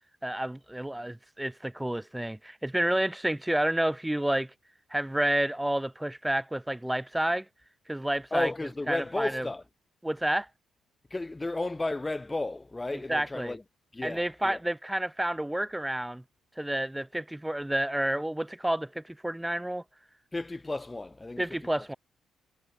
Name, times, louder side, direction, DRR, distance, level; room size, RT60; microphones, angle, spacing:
voice 1, 0.2-4.5 4.9-7.5 7.9-8.5 8.9-9.5 10.0-10.5 12.9-13.6 14.0-16.2 16.6-19.8 21.4-22.0, right 1 dB, 5° right, 7.0 m, -30 dB
voice 2, 8.3-9.6 11.1-13.6 13.9-14.6 20.3-21.7, left 2 dB, 15° left, 3.9 m, -33 dB
cardioid pair, 90°, 0 cm